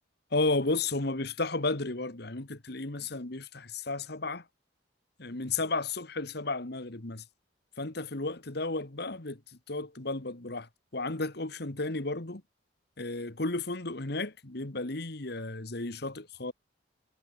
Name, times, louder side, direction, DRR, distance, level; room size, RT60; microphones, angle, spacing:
voice 1, 0.3-4.4 5.2-7.2 7.8-9.4 9.7-12.4 13.0-16.5, left 3 dB, 55° left, 1.8 m, -33 dB
head